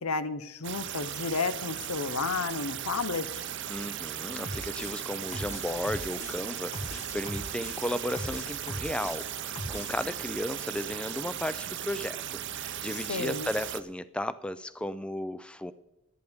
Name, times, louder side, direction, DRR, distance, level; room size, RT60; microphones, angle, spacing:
voice 1, 0.0-3.4 13.1-13.5, left 4 dB, 80° left, 13 dB, 0.8 m, -32 dB
sound 1, 0.6-13.8, right 10 dB, 55° right, 0.6 m, -37 dB
voice 2, 3.7-15.7, left 1 dB, 5° left, 14 dB, 0.4 m, -35 dB
sound 2, 4.4-10.0, left 1 dB, 30° left, 1.8 m, -40 dB
17.5 x 12.5 x 3.6 m, 0.98 s
head